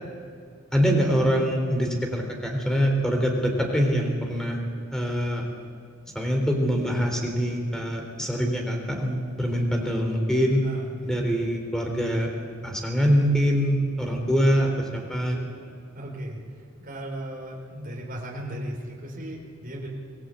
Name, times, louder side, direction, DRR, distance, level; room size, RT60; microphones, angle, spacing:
voice 1, 0.7-4.6 4.9-5.5 6.2-10.6 11.0-12.3 12.6-15.4, equal, 5° left, 1 dB, 3.8 m, -24 dB
voice 2, 10.6-11.1 15.9-16.4 16.8-19.9, right 1 dB, 45° right, -1 dB, 4.8 m, -36 dB
26.0 x 19.0 x 8.3 m, 2.4 s
head